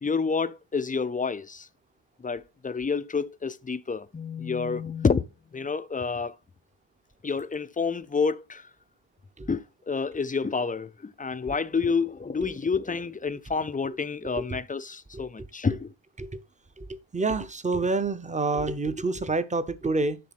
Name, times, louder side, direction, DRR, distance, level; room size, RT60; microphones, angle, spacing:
voice 1, 0.0-1.7 2.2-6.4 7.2-8.7 9.5-15.9, left 5 dB, 20° left, 0.4 m, -29 dB
voice 2, 17.1-20.2, right 3 dB, 15° right, 0.7 m, -27 dB
10.5 x 3.8 x 5.9 m
wide cardioid pair, 115°, 50 cm